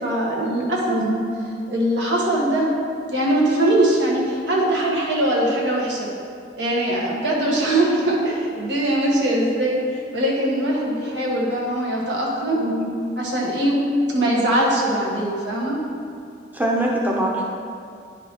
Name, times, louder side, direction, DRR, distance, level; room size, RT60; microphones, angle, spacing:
voice 1, 0.0-1.0 1.7-2.7 3.1-6.1 6.6-12.6 13.2-13.7 14.1-15.8, right 1 dB, 85° right, -4 dB, 1.5 m, -21 dB
voice 2, 12.5-12.9 16.5-17.4, right 1 dB, 10° right, -3 dB, 0.6 m, -23 dB
10.0 x 5.0 x 3.0 m, 2.4 s
head